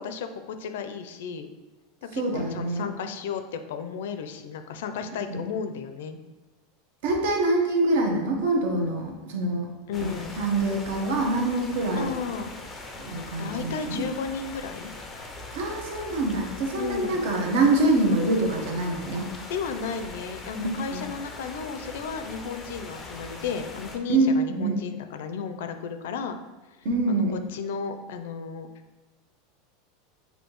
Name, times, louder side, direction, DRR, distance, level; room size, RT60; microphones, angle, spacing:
voice 1, 0.0-1.5 2.0-6.2 9.9-10.4 11.9-12.5 13.4-14.9 16.8-17.2 19.5-26.3 27.1-28.7, left 6 dB, 75° left, 8 dB, 0.4 m, -34 dB
voice 2, 2.1-2.9 5.3-5.4 7.0-9.7 10.0-10.1 10.4-12.1 13.0-14.0 15.5-19.3 20.6-21.0 24.1-24.8 26.8-27.4, right 2 dB, 65° right, 1 dB, 0.9 m, -25 dB
sound 1, 9.9-24.0, left 2 dB, 15° left, 0.4 m, -41 dB
6.3 x 2.7 x 3.0 m, 1.2 s
supercardioid pair, 175°, 0 cm